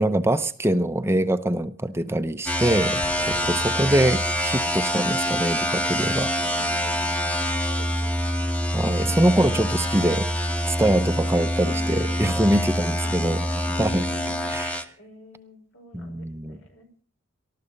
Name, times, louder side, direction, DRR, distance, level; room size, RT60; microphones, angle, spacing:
voice 1, 0.0-3.0 3.5-6.3 8.7-10.3 10.7-13.4 13.8-14.0 14.5-14.8 15.9-16.6, right 1 dB, 10° right, 10 dB, 0.7 m, -23 dB
sound 1, 2.5-14.8, equal, 5° left, 1.2 m, -25 dB
Explosion, 3.0-4.6, equal, 45° left, 3.0 m, -43 dB
voice 2, 3.2-3.9 6.4-7.1 7.4-8.6 11.6-12.6 12.9-14.5 15.0-16.9, equal, 75° left, 4 dB, 5.2 m, -46 dB
19.5 x 13.0 x 5.3 m, 0.42 s
head